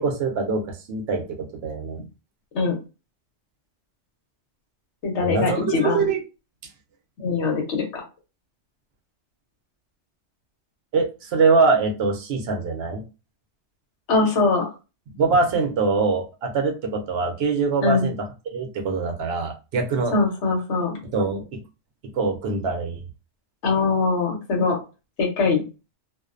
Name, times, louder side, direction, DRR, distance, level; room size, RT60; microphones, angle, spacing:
voice 1, 0.0-2.0 5.2-6.2 10.9-13.0 15.1-18.2 18.5-20.1 21.1-21.6 22.1-23.0, right 4 dB, 65° right, 3 dB, 0.8 m, -23 dB
voice 2, 5.0-6.0 7.2-8.0 14.1-14.7 17.8-18.1 20.1-21.0 23.6-24.8 25.2-25.6, left 4 dB, 75° left, 1 dB, 1.1 m, -22 dB
2.5 x 2.1 x 2.4 m, 0.30 s
omnidirectional pair, 1.2 m